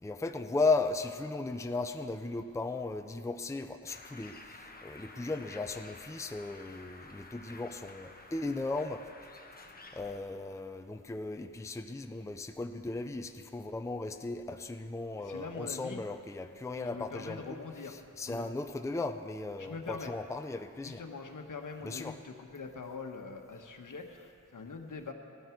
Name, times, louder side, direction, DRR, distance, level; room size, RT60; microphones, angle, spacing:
voice 1, 0.0-9.1 9.9-17.6 17.9-21.0 21.8-22.2, left 3 dB, 10° left, 7 dB, 0.5 m, -36 dB
Bird, 3.9-10.2, left 2 dB, 30° left, 1.1 m, -52 dB
voice 2, 15.2-16.0 16.8-18.0 18.2-18.5 19.6-20.1 20.8-25.1, left 4 dB, 75° left, 3 dB, 1.4 m, -43 dB
18.0 x 13.5 x 4.6 m, 2.4 s
wide cardioid pair, 105°, 32 cm